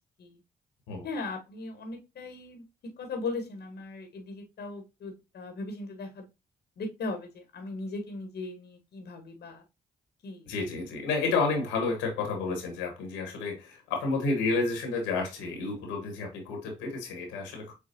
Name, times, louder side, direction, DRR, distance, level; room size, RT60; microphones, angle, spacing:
voice 1, 1.0-6.3 6.8-9.6 10.2-10.5, left 3 dB, 60° left, 1.2 m, -38 dB
voice 2, 10.5-17.7, left 3 dB, 85° left, 1.4 m, -30 dB
6.8 x 2.3 x 2.7 m
hypercardioid pair, 40°, 19 cm